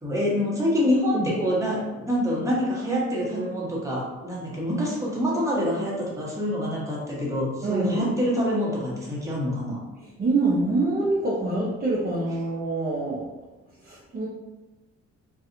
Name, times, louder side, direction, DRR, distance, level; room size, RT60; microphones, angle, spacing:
voice 1, 0.0-9.8, equal, 10° right, -5 dB, 0.9 m, -26 dB
voice 2, 7.6-8.1 10.2-13.3 13.8-14.3, right 2 dB, 30° right, -6 dB, 0.5 m, -25 dB
2.4 x 2.3 x 2.7 m, 1.1 s
cardioid pair, 90°, 30 cm